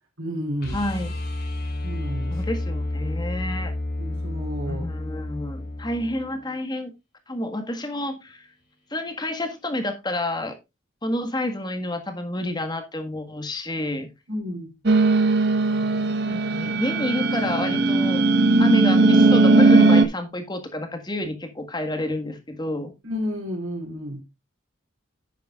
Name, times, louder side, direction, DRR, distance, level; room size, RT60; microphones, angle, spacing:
voice 1, 0.2-0.8 1.8-2.4 4.0-4.8 14.3-14.7 23.0-24.2, equal, 75° right, 3.4 m, -31 dB
sound 1, 0.6-6.6 9.1-9.2, left 1 dB, 50° left, 4.2 m, -30 dB
voice 2, 0.7-1.1 2.3-3.7 4.6-6.9 7.3-8.5 8.9-10.6 11.0-14.1 16.3-18.2 18.6-22.9, left 1 dB, 20° left, 1.6 m, -29 dB
sound 2, 14.9-20.0, right 3 dB, 55° right, 1.1 m, -18 dB
10.5 x 8.9 x 2.4 m
head